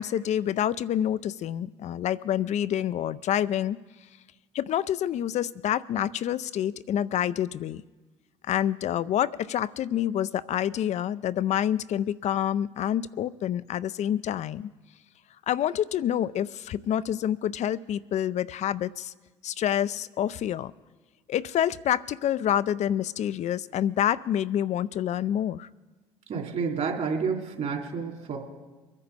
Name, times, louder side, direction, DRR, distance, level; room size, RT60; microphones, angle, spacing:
voice 1, 0.0-3.8 4.5-7.8 8.5-14.7 15.5-19.1 19.4-20.7 21.3-25.7, left 10 dB, 55° left, 16 dB, 0.5 m, -27 dB
voice 2, 26.3-28.4, right 5 dB, 55° right, 1 dB, 3.4 m, -29 dB
23.5 x 9.9 x 4.2 m, 1.2 s
hypercardioid pair, 60°, 14 cm